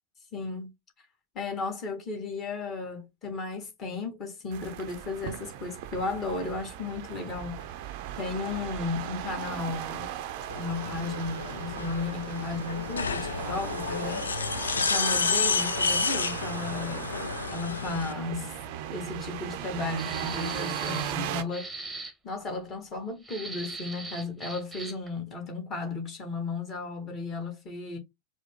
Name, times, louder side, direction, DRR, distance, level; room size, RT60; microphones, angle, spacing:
voice 1, 0.3-0.7 1.3-7.7 8.1-10.1 10.6-14.3 14.8-17.1 17.5-18.5 18.9-21.7 22.2-28.0, left 3 dB, 30° left, 1.6 m, -34 dB
sound 1, 4.5-21.4, right 10 dB, 45° right, 0.5 m, -37 dB
sound 2, 10.5-18.1, left 5 dB, 70° left, 0.4 m, -30 dB
sound 3, 20.0-21.2 21.5-22.1 23.2-25.1, right 2 dB, 5° right, 1.0 m, -40 dB
4.8 x 2.1 x 3.6 m
figure-of-eight pair, 90°, 0 cm